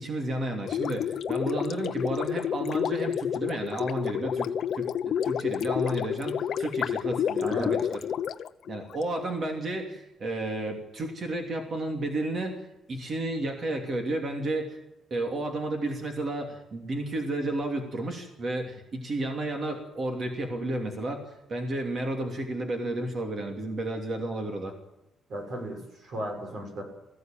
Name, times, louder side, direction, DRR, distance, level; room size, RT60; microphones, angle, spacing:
voice 1, 0.0-7.8 8.7-14.8 15.1-24.7, right 1 dB, 35° right, 3 dB, 2.8 m, -32 dB
Gurgling, 0.6-9.0, left 8 dB, 50° left, 0.9 m, -29 dB
voice 2, 7.3-7.8 25.3-26.8, equal, 50° right, 3 dB, 6.7 m, -35 dB
21.0 x 15.5 x 9.1 m, 0.93 s
cardioid pair, 180°, 0 cm